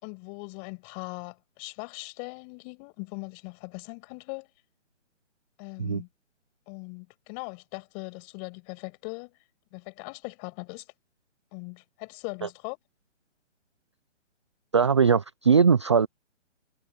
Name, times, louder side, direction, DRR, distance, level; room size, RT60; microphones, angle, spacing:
voice 1, 0.0-4.5 5.6-6.1 6.7-9.3 9.7-10.9 11.5-12.8, left 39 dB, 25° left, 7.0 m, -40 dB
voice 2, 14.7-16.1, right 6 dB, 25° right, 0.4 m, -20 dB
hypercardioid pair, 150°, 37 cm